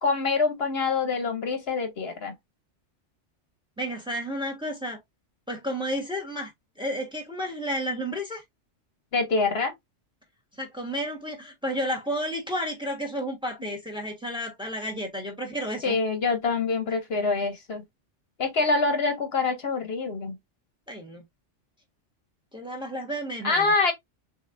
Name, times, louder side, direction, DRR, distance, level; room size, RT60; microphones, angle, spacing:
voice 1, 0.0-2.3 9.1-9.7 15.8-17.8 18.4-20.4 23.4-23.9, left 4 dB, 60° left, 1.0 m, -25 dB
voice 2, 3.8-5.0 5.5-6.5 6.8-8.4 10.5-16.0 16.9-17.0 20.9-21.2 22.5-23.7, equal, 5° right, 1.2 m, -32 dB
6.3 x 2.7 x 2.5 m
omnidirectional pair, 1.2 m